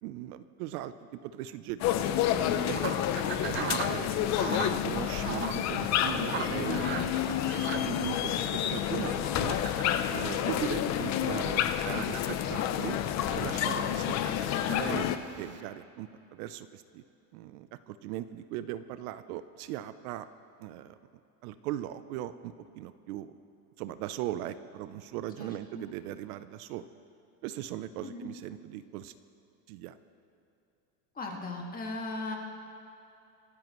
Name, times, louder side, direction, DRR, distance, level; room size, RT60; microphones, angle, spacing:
voice 1, 0.0-1.9 2.6-3.0 3.4-4.1 4.4-7.1 7.5-9.6 10.1-13.0 13.3-14.2 14.7-15.1 15.4-17.0 17.3-20.3 20.6-21.0 21.4-23.3 23.8-26.9 27.4-29.1 29.7-30.0, right 13 dB, 65° right, 13 dB, 0.7 m, -39 dB
sound 1, 1.8-15.2, left 10 dB, 35° left, 0.7 m, -29 dB
sound 2, 2.6-15.6, right 8 dB, 25° right, 0.5 m, -42 dB
voice 2, 25.4-25.9 28.0-28.3 31.2-32.4, left 2 dB, 20° left, 0 dB, 1.9 m, -38 dB
25.5 x 13.5 x 3.1 m, 2.8 s
supercardioid pair, 135°, 48 cm